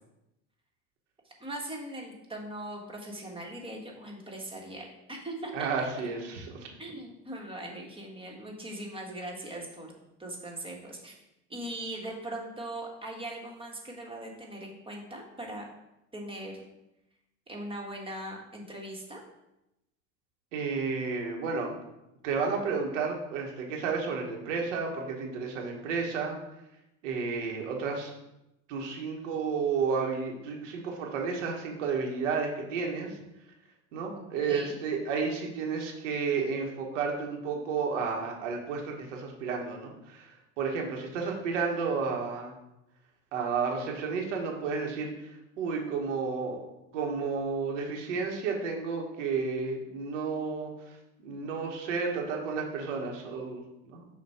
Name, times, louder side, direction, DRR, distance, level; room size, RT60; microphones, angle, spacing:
voice 1, 1.2-5.9 6.8-9.9 10.2-11.2 11.5-15.7 16.1-16.6 17.5-19.2 34.1-34.8, right 1 dB, 15° right, -1 dB, 1.5 m, -40 dB
voice 2, 5.5-6.7 20.5-21.7 22.2-26.4 27.0-28.1 28.7-33.2 33.9-40.3 40.6-42.5 43.3-45.1 45.6-46.6 46.9-50.7 51.2-54.1, right 5 dB, 85° right, 0 dB, 1.3 m, -32 dB
6.7 x 2.6 x 5.6 m, 0.89 s
supercardioid pair, 95°, 36 cm